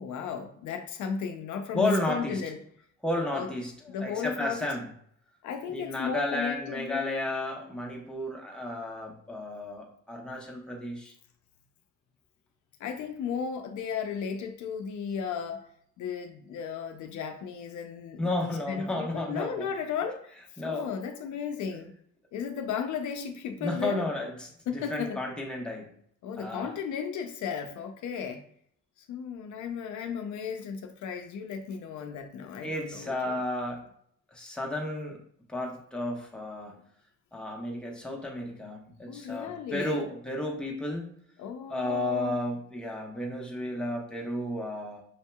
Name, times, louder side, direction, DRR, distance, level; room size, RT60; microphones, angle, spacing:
voice 1, 0.0-2.6 3.3-3.5 3.9-4.8 5.4-7.0 12.8-15.7 16.0-20.4 20.6-21.9 22.3-24.1 24.7-25.2 26.2-28.4 29.1-33.4 39.1-40.0 41.4-42.4, left 6 dB, 75° left, 5 dB, 0.5 m, -35 dB
voice 2, 1.7-2.4 3.0-3.7 4.0-4.9 5.7-11.1 18.2-19.7 20.6-20.9 23.6-24.5 24.9-25.9 26.4-26.7 32.6-33.8 34.3-35.2 35.5-36.8 37.3-41.1 41.7-45.0, left 1 dB, 5° left, -1 dB, 0.9 m, -32 dB
5.6 x 2.7 x 2.2 m, 0.65 s
cardioid pair, 90°, 30 cm